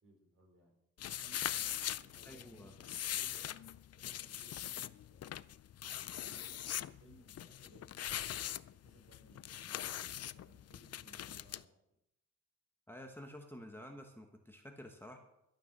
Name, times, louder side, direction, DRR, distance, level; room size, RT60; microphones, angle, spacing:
voice 1, 0.0-0.7 1.2-3.5 4.0-5.4 6.1-7.9 8.2-8.3 8.8-10.1 10.3-11.9, right 1 dB, 45° right, 0 dB, 4.9 m, -63 dB
sound 1, 1.0-11.6, left 11 dB, 55° left, 0.4 m, -42 dB
voice 2, 2.2-2.7 12.9-15.2, left 1 dB, 5° left, 3 dB, 1.1 m, -50 dB
12.0 x 9.0 x 6.5 m, 0.84 s
wide cardioid pair, 120°, 30 cm